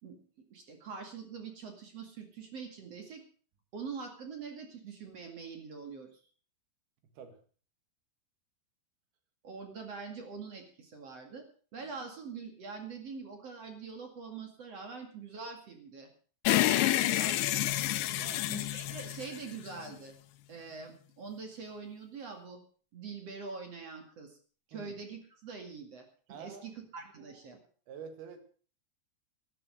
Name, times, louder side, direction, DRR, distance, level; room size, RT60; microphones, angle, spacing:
voice 1, 0.5-3.2 3.7-6.2 9.4-11.5 11.7-16.1 16.7-17.7 18.5-20.1 20.5-22.6 22.9-24.4 24.7-27.6, right 5 dB, 45° right, 4 dB, 2.5 m, -44 dB
sound 1, 16.5-19.9, left 15 dB, 80° left, 3.0 m, -29 dB
voice 2, 18.1-19.0 24.7-24.9 26.3-26.7 27.2-28.4, right 6 dB, 60° right, 7 dB, 3.7 m, -49 dB
13.5 x 11.5 x 6.3 m, 0.42 s
omnidirectional pair, 5.2 m